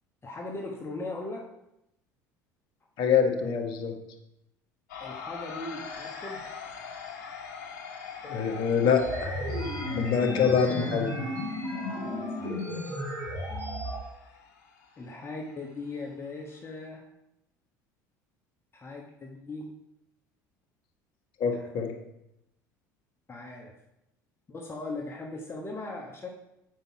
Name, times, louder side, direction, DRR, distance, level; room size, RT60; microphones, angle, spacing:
voice 1, 0.2-1.4 5.0-6.4 11.7-12.9 15.0-17.0 18.7-19.7 21.5-21.7 23.3-23.7 24.5-26.3, left 2 dB, 25° left, 0 dB, 1.3 m, -39 dB
voice 2, 3.0-3.9 8.2-9.3 10.0-11.1 21.4-21.9, left 6 dB, 55° left, 4 dB, 1.4 m, -25 dB
sound 1, 4.9-16.9, left 6 dB, 75° left, 1.7 m, -44 dB
sound 2, 9.0-14.0, left 1 dB, 80° right, 3.0 m, -33 dB
8.1 x 5.4 x 4.6 m, 0.86 s
hypercardioid pair, 70°, 10 cm